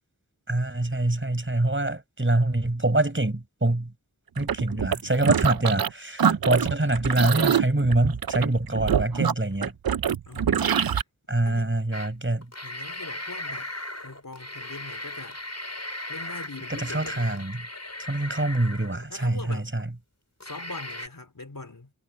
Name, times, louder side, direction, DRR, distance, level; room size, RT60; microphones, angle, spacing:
voice 1, 0.5-3.9 4.4-9.7 11.3-12.5 16.7-17.7 18.0-19.9, right 2 dB, 35° right, 5.5 m, -25 dB
sound 1, 4.4-5.9 6.2-11.0, right 8 dB, 85° right, 0.6 m, -25 dB
voice 2, 10.3-11.0 11.5-11.8 12.6-13.7 14.0-15.4 16.1-17.4 19.1-19.7 20.4-21.9, left 3 dB, 70° left, 3.8 m, -42 dB
sound 2, 11.9-12.1 12.4-19.3 19.8-19.9 20.4-21.1, left 1 dB, 50° left, 6.6 m, -37 dB
wide cardioid pair, 55°, 35 cm